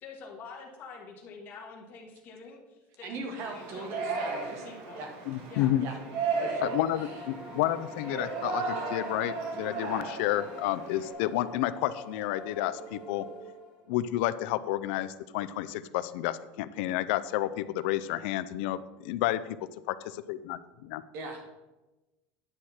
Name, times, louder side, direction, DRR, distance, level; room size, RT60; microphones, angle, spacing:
voice 1, 0.0-5.1 5.5-5.7, left 4 dB, 35° left, -2 dB, 1.6 m, -46 dB
voice 2, 3.0-4.6 4.9-5.1 5.8-6.0 6.4-6.8 21.1-21.5, right 3 dB, 45° right, 4 dB, 1.6 m, -39 dB
Yell, 3.4-11.1, right 4 dB, 65° right, 1.5 m, -35 dB
voice 3, 5.3-5.9 6.6-13.3 13.9-19.4 19.9-21.0, left 14 dB, 70° left, 15 dB, 0.4 m, -30 dB
sound 1, 5.8-13.9, left 2 dB, 10° right, 2.2 m, -45 dB
9.8 x 6.4 x 4.3 m, 1.1 s
cardioid pair, 165°, 6 cm